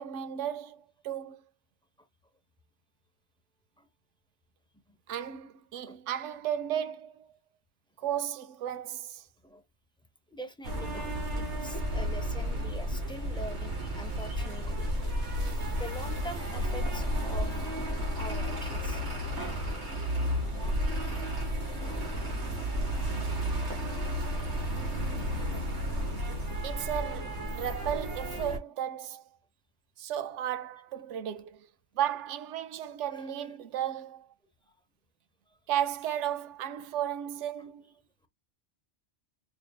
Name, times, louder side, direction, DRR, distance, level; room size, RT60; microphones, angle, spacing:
voice 1, 0.0-1.4 5.1-7.3 8.0-9.3 26.6-29.2 30.0-31.7 31.9-34.3 35.7-37.9, right 10 dB, 90° right, 0.9 m, -34 dB
voice 2, 10.3-15.1 15.4-17.6 17.8-19.0 22.3-22.4 24.2-24.4 33.1-33.2 34.7-34.8 35.5-35.6, equal, 5° left, 0.4 m, -44 dB
sound 1, 10.6-28.6, equal, 70° right, 2.1 m, -32 dB
5.0 x 2.6 x 2.3 m
omnidirectional pair, 1.2 m